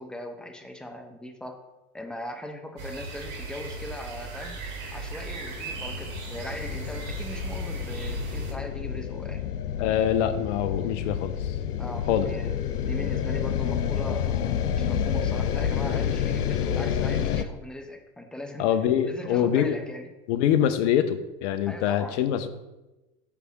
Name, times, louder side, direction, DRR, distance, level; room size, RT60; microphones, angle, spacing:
voice 1, 0.0-1.6 1.9-4.6 4.9-9.4 11.8-14.4 14.7-18.7 19.0-20.1 21.7-22.2, left 1 dB, ahead, 4 dB, 0.6 m, -39 dB
sound 1, 2.8-8.5, right 3 dB, 55° right, 2.1 m, -37 dB
sound 2, 4.9-17.4, left 8 dB, 85° left, 0.6 m, -29 dB
voice 2, 9.8-11.6 12.1-12.3 18.6-19.8 20.3-22.5, left 10 dB, 50° left, 11 dB, 0.8 m, -24 dB
8.4 x 3.5 x 6.1 m, 1.0 s
hypercardioid pair, 100°, 45 cm